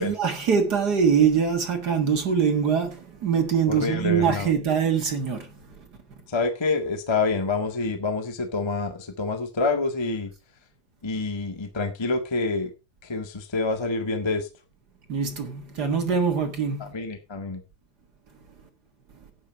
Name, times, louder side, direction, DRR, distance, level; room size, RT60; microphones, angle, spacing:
voice 1, 0.0-5.5 5.8-5.9 15.1-16.9, right 6 dB, 45° right, 1.4 m, -23 dB
voice 2, 3.7-4.5 6.3-10.3 11.0-12.7 13.1-14.5 16.8-17.6, left 3 dB, 30° left, 0.4 m, -27 dB
12.0 x 8.9 x 4.6 m
omnidirectional pair, 3.9 m